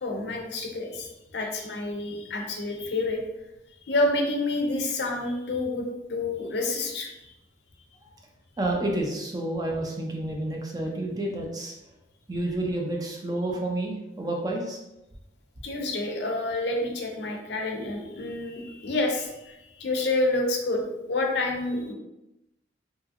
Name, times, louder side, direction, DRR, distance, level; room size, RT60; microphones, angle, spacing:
voice 1, 0.0-3.2 3.9-7.3 15.6-21.9, left 2 dB, 65° left, 2 dB, 0.5 m, -28 dB
voice 2, 8.6-11.7 12.3-14.8, right 1 dB, 20° right, 0 dB, 0.4 m, -30 dB
2.8 x 2.6 x 2.4 m, 0.91 s
head